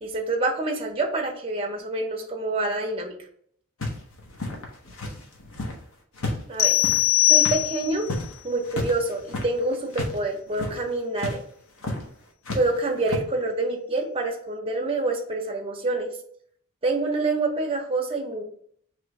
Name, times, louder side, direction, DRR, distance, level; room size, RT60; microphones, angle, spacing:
voice 1, 0.0-3.1 6.5-6.8 7.3-8.1 8.4-11.4 12.6-16.1 16.8-18.4, right 2 dB, 25° right, 1 dB, 0.7 m, -27 dB
sound 1, 3.8-5.8 6.1-10.2 10.5-10.8 11.2-11.4 11.8-12.1 12.4-13.2, left 2 dB, 70° left, 0.9 m, -32 dB
sound 2, 6.6-8.1, left 15 dB, 45° left, 0.3 m, -20 dB
3.2 x 3.0 x 4.6 m, 0.63 s
head